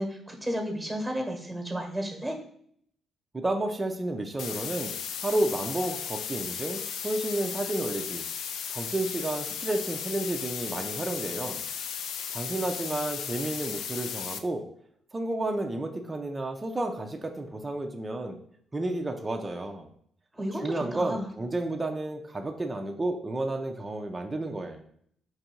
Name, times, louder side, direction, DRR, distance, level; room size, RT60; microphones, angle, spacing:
voice 1, 0.0-2.4 20.3-21.3, equal, 5° right, 3 dB, 1.2 m, -32 dB
voice 2, 3.3-4.9 5.2-8.2 8.7-11.6 12.3-14.6 15.1-18.4 18.7-19.9 20.6-24.8, right 2 dB, 20° right, 3 dB, 0.5 m, -31 dB
sound 1, 4.4-14.4, left 7 dB, 80° left, 0.4 m, -35 dB
4.6 x 2.6 x 4.4 m, 0.64 s
cardioid pair, 90°, 0 cm